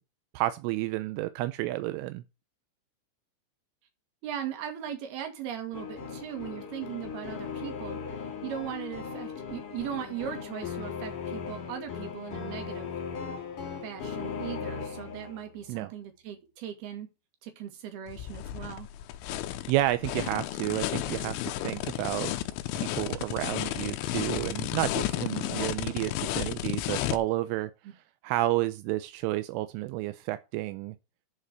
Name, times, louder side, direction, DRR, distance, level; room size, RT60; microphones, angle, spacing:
voice 1, 0.3-2.2 15.7-15.9 19.7-21.4 21.6-22.3 22.7-27.7 28.2-30.9, right 16 dB, 85° right, 3.2 m, -30 dB
voice 2, 4.2-8.0 8.4-12.9 13.8-17.1 17.4-18.9 27.9-28.0, right 10 dB, 60° right, 3.8 m, -38 dB
sound 1, 5.7-15.6, left 6 dB, 45° left, 4.2 m, -38 dB
sound 2, 18.1-27.2, left 13 dB, 80° left, 3.1 m, -33 dB
11.0 x 5.1 x 6.1 m
omnidirectional pair, 5.6 m